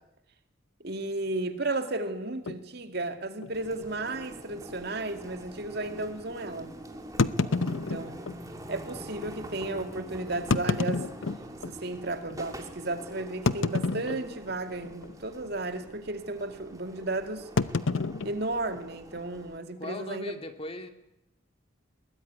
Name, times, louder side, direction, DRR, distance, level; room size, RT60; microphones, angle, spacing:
voice 1, 0.8-6.8 7.7-8.2 8.7-11.0 11.6-17.5 18.2-20.3, right 2 dB, 55° right, 8 dB, 2.2 m, -34 dB
sound 1, 2.5-2.6 3.4-3.5 3.8-3.9 4.5-4.6 7.2-8.4 9.2-9.3 10.3-11.8 12.3-12.4 13.5-14.5 14.8-15.2 15.4-15.8 17.6-19.2, left 3 dB, 80° left, 0.8 m, -29 dB
sound 2, 3.5-19.6, right 1 dB, 20° right, 2.6 m, -45 dB
voice 2, 7.5-8.0 19.8-20.9, left 1 dB, 30° left, 7 dB, 2.2 m, -40 dB
21.5 x 19.0 x 9.5 m, 0.87 s
head